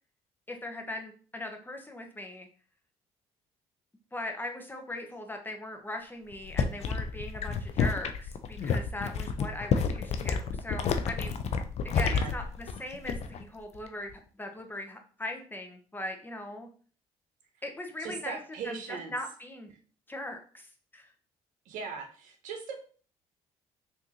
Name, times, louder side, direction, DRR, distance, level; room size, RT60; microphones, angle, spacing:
voice 1, 0.5-2.5 4.1-11.3 11.9-16.7 17.6-18.4 18.6-19.7 20.1-21.1, left 1 dB, 15° left, 4 dB, 0.7 m, -39 dB
sound 1, 6.3-13.4 13.7-14.1, left 5 dB, 55° left, 0.4 m, -30 dB
voice 2, 11.9-12.3 18.0-19.1 21.7-22.8, right 5 dB, 80° right, 4 dB, 0.7 m, -39 dB
3.5 x 2.6 x 2.8 m, 0.41 s
supercardioid pair, 70°, 13 cm